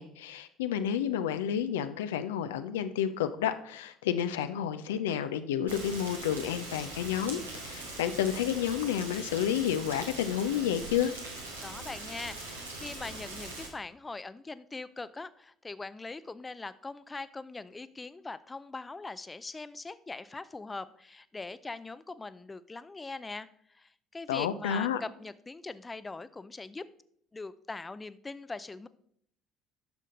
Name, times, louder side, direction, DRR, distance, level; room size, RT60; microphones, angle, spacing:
voice 1, 0.0-11.1 24.3-25.0, left 9 dB, 75° left, 10 dB, 0.5 m, -30 dB
Rain, 5.7-13.7, right 2 dB, 90° right, 1.6 m, -41 dB
voice 2, 11.6-26.9 27.3-28.9, left 3 dB, 20° left, 15 dB, 0.5 m, -42 dB
10.5 x 6.5 x 3.7 m, 0.67 s
figure-of-eight pair, 55°, 0 cm